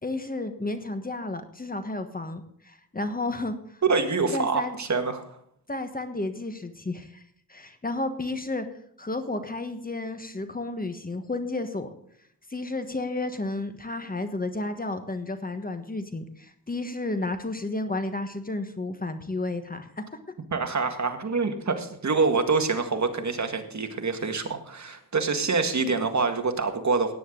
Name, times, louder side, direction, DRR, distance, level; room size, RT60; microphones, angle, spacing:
voice 1, 0.0-3.8 4.3-4.8 5.7-7.2 7.5-8.7 9.0-11.9 12.5-20.0, left 2 dB, 25° left, 8 dB, 1.3 m, -32 dB
voice 2, 3.8-5.4 20.5-27.1, right 4 dB, 50° right, 6 dB, 1.9 m, -26 dB
17.0 x 9.6 x 3.8 m, 0.69 s
wide cardioid pair, 100°, 37 cm